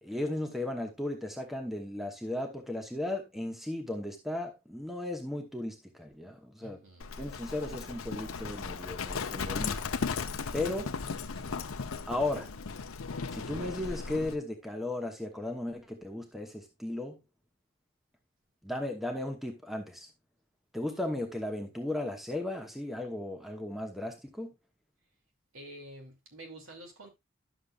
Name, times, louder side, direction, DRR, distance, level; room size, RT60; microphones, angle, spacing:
voice 1, 0.0-6.8 7.2-9.8 10.5-10.9 12.1-12.5 13.3-17.2 18.6-20.1 20.7-24.5, left 1 dB, ahead, 1.0 m, -35 dB
voice 2, 6.6-7.2 11.3-11.6 25.5-27.1, right 1 dB, 70° right, 2.7 m, -49 dB
Livestock farm animals working animals, 7.0-14.4, left 5 dB, 75° left, 0.7 m, -36 dB
11.5 x 6.8 x 2.4 m
head